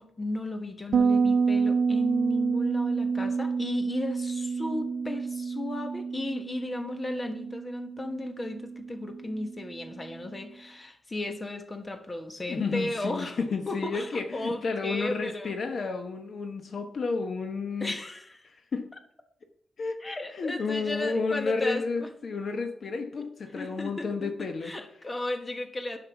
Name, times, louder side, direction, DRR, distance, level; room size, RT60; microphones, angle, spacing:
voice 1, 0.0-13.4 13.7-15.5 17.8-18.5 20.0-22.1 23.5-26.0, left 2 dB, 25° left, 6 dB, 1.3 m, -35 dB
Bass guitar, 0.9-10.3, right 5 dB, 65° right, 0.6 m, -29 dB
voice 2, 12.5-17.9 18.7-18.8 19.8-24.7, left 4 dB, 60° left, 6 dB, 1.0 m, -31 dB
10.5 x 5.8 x 5.8 m, 0.70 s
cardioid pair, 95°, 0 cm